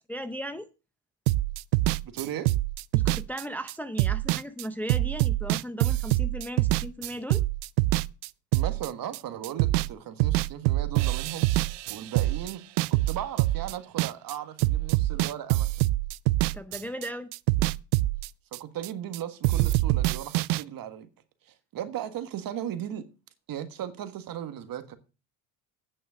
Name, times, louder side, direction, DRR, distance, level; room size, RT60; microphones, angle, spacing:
voice 1, 0.1-0.7 2.9-7.4 16.5-17.3, equal, 5° left, 0.6 m, -36 dB
sound 1, 1.3-9.9 10.2-14.3 14.6-17.1 17.3-19.2 19.4-20.6, right 18 dB, 75° right, 0.5 m, -25 dB
voice 2, 2.0-2.5 8.5-11.5 11.9-12.6 12.9-15.7 18.5-21.1 21.4-23.0 23.5-25.0, right 10 dB, 50° right, 1.6 m, -36 dB
9.2 x 6.5 x 6.3 m
supercardioid pair, 105°, 43 cm